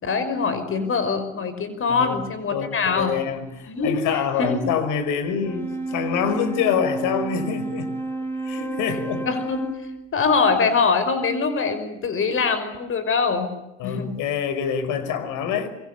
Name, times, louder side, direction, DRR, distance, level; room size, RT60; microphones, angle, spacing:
voice 1, 0.0-3.2 3.7-4.0 4.4-4.6 9.3-9.7 10.1-13.5 13.8-14.1, left 4 dB, 35° left, 11 dB, 5.6 m, -23 dB
voice 2, 1.9-2.2 2.5-7.9 8.4-9.3 13.8-15.7, left 7 dB, 60° left, 12 dB, 5.5 m, -26 dB
Wind instrument woodwind instrument, 5.3-10.1, right 2 dB, 5° left, 5.5 m, -31 dB
26.5 x 24.0 x 8.4 m, 0.92 s
hypercardioid pair, 80°, 35 cm